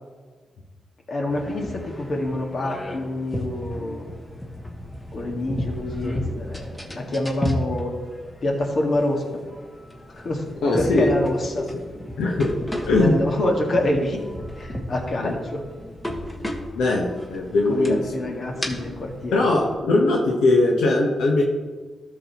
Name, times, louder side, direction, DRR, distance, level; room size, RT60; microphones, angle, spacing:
voice 1, 1.1-4.1 5.1-8.0 8.4-9.5 10.1-10.4 10.8-11.7 13.0-14.2 14.6-15.6 17.7-19.6, left 1 dB, 55° left, 1 dB, 1.7 m, -26 dB
sound 1, 1.3-19.7, left 1 dB, 20° left, 1.5 m, -34 dB
voice 2, 10.6-11.1 11.7-11.9 12.2-12.5 12.9-13.2 15.2-15.3 16.8-18.0 18.5-18.7 19.3-21.4, left 2 dB, 90° left, -1 dB, 1.1 m, -20 dB
13.0 x 6.4 x 3.0 m, 1.4 s
cardioid pair, 70°, 0 cm